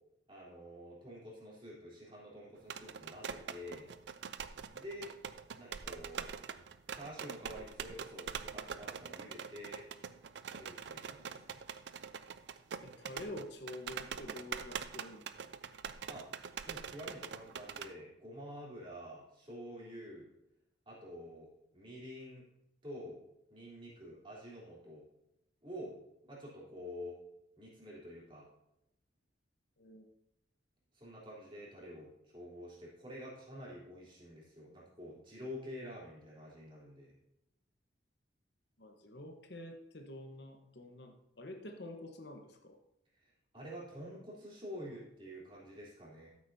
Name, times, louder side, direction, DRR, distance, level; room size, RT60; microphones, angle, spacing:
voice 1, 0.3-3.9 4.7-5.1 5.5-6.3 6.9-9.8 10.5-11.6 16.1-16.3 16.6-20.3 20.9-22.4 22.8-23.2 23.5-25.1 25.6-26.0 26.3-27.2 27.6-28.5 30.9-37.2 43.2-46.3, equal, 25° right, -6 dB, 3.5 m, -48 dB
sound 1, 2.6-17.9, right 7 dB, 70° right, 0.4 m, -44 dB
voice 2, 12.8-15.2 29.8-30.0 38.8-42.8, left 1 dB, 65° left, 4 dB, 1.1 m, -48 dB
13.5 x 8.2 x 2.7 m, 0.85 s
head